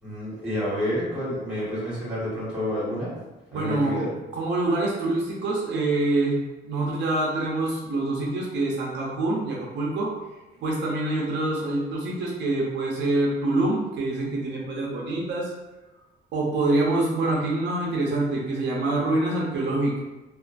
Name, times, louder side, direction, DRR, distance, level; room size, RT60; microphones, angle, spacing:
voice 1, 0.0-3.1 3.5-4.1, equal, 5° right, -9 dB, 1.2 m, -29 dB
voice 2, 3.5-4.0 4.3-6.4 6.6-10.1 10.6-15.5 16.3-20.0, right 2 dB, 75° right, -3 dB, 0.6 m, -25 dB
2.4 x 2.4 x 2.3 m, 1.1 s
cardioid pair, 165°, 18 cm